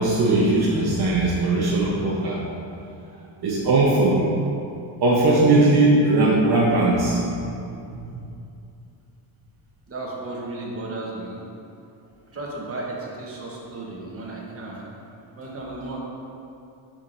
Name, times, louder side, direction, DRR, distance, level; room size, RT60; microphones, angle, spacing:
voice 1, 0.0-2.4 3.4-4.3 5.0-7.2 7.9-8.2, right 2 dB, 50° right, -4 dB, 0.9 m, -19 dB
voice 2, 9.9-11.4 12.3-14.9 15.4-16.0, right 2 dB, 30° right, -3 dB, 1.1 m, -34 dB
7.2 x 6.3 x 2.6 m, 2.6 s
cardioid pair, 135°, 49 cm